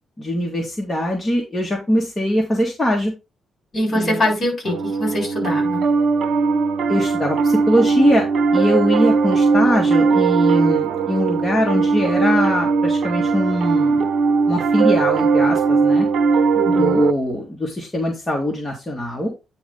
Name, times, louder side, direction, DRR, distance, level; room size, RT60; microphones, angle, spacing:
voice 1, 0.2-3.1 3.9-4.2 6.9-8.3 8.5-14.0 14.5-16.1 16.7-19.3, left 1 dB, 15° left, -1 dB, 1.5 m, -21 dB
voice 2, 3.7-5.8 16.5-17.0, left 1 dB, 30° left, 0 dB, 4.4 m, -22 dB
Piano, 4.6-17.1, right 4 dB, 60° right, 1.0 m, -19 dB
9.1 x 3.3 x 5.2 m, 0.26 s
cardioid pair, 165°, 0 cm